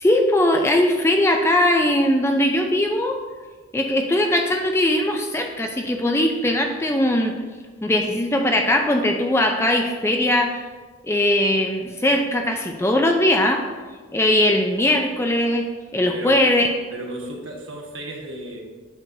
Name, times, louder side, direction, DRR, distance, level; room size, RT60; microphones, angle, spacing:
voice 1, 0.0-3.2 3.7-7.4 7.8-10.6 11.0-13.6 14.1-16.7, left 1 dB, 15° left, 3 dB, 0.4 m, -20 dB
voice 2, 16.9-18.6, right 1 dB, 65° right, 0 dB, 1.3 m, -34 dB
8.3 x 6.6 x 2.7 m, 1.4 s
head